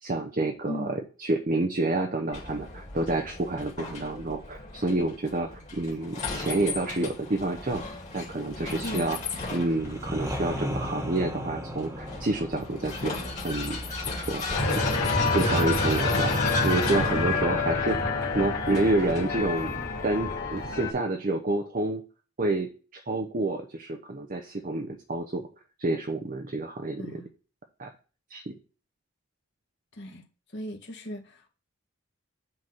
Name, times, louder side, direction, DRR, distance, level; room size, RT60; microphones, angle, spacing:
voice 1, 0.0-7.8 8.1-9.2 9.5-13.1 13.4-13.8 14.1-14.4 14.7-14.8 15.3-19.8 20.0-22.0 22.4-25.5 25.8-27.2 27.8-27.9 28.3-28.5, right 2 dB, 40° right, 0.7 m, -29 dB
voice 2, 0.6-0.9 8.8-9.1 27.0-27.3 29.9-30.2 30.5-31.5, left 1 dB, 55° left, 1.8 m, -37 dB
Vehicle, 2.3-20.4, left 3 dB, 35° left, 2.2 m, -36 dB
sound 1, 9.3-15.0, equal, 15° right, 1.2 m, -37 dB
sound 2, 14.5-20.9, left 3 dB, 90° left, 2.5 m, -27 dB
7.7 x 4.0 x 5.8 m
head